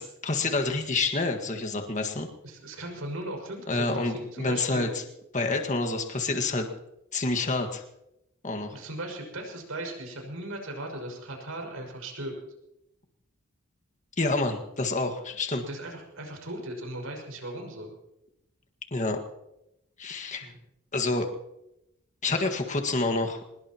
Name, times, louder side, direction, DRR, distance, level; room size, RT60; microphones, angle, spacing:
voice 1, 0.0-2.3 3.7-4.9 5.3-6.7 7.1-7.8 8.4-8.8 14.2-15.7 18.9-19.2 20.0-20.5 20.9-21.3 22.2-23.4, left 3 dB, 35° left, 4 dB, 1.6 m, -28 dB
voice 2, 2.4-4.9 8.7-12.3 15.6-17.9 20.4-20.6, right 1 dB, 85° right, 1 dB, 5.8 m, -37 dB
24.0 x 20.5 x 3.0 m, 0.86 s
head